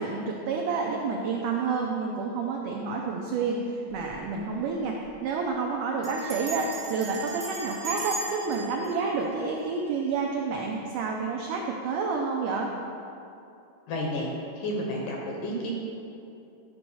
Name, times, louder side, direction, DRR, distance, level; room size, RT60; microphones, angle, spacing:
voice 1, 0.0-5.0 5.2-12.7, right 4 dB, 85° right, 0 dB, 1.8 m, -29 dB
Bell, 3.9-4.3 4.5-4.6 4.9-5.2 6.0-10.1, right 3 dB, 25° right, 1.1 m, -39 dB
voice 2, 13.9-15.7, left 1 dB, 70° left, -1 dB, 2.2 m, -31 dB
11.5 x 4.6 x 5.5 m, 2.7 s
omnidirectional pair, 4.5 m